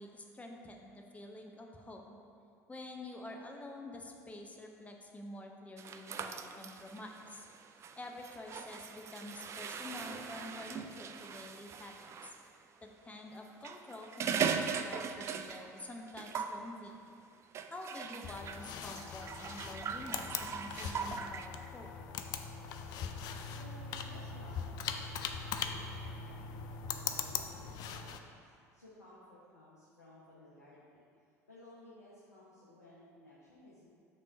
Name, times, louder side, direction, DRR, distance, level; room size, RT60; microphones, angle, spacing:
voice 1, 0.0-2.2 2.7-7.5 8.0-12.3 12.8-17.0 17.7-21.9, left 1 dB, 15° left, 1 dB, 0.7 m, -48 dB
sound 1, 5.8-12.4 13.4-15.8 16.1-16.6 17.5-21.5, right 6 dB, 30° right, 0.3 m, -40 dB
sound 2, 18.2-28.2, left 6 dB, 50° left, 0.4 m, -41 dB
voice 2, 23.5-28.4 28.7-31.0 31.5-33.9, left 1 dB, 80° left, -8 dB, 0.9 m, -57 dB
5.4 x 3.6 x 5.3 m, 2.3 s
figure-of-eight pair, 65°, 9 cm